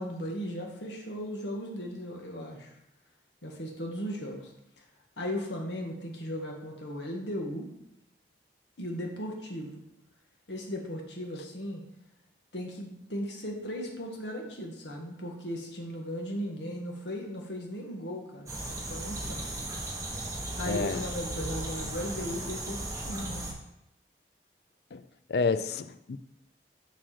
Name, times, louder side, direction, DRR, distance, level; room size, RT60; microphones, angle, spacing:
voice 1, 0.0-2.7 3.4-4.5 4.8-4.9 5.2-7.7 8.8-9.8 10.5-11.8 12.5-19.5 20.1-20.3 20.6-23.4, equal, 85° left, 1.7 m, -37 dB
sound 1, 18.5-23.5, right 1 dB, 20° right, 1.2 m, -36 dB
voice 2, 20.7-21.0 24.9-25.0 25.3-26.2, left 4 dB, 65° left, 0.4 m, -29 dB
7.6 x 6.1 x 4.4 m
head